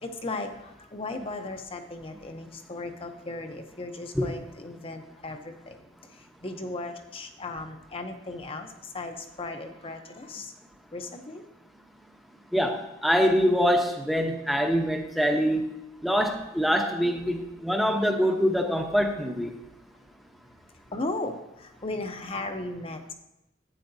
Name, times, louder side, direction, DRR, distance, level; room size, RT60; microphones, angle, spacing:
voice 1, 0.0-5.8 6.4-8.7 8.9-10.5 10.9-11.4 20.9-23.1, left 2 dB, 30° left, 5 dB, 0.7 m, -36 dB
voice 2, 12.5-15.7 16.0-19.6, equal, ahead, 3 dB, 0.8 m, -24 dB
11.5 x 8.8 x 2.7 m, 0.88 s
head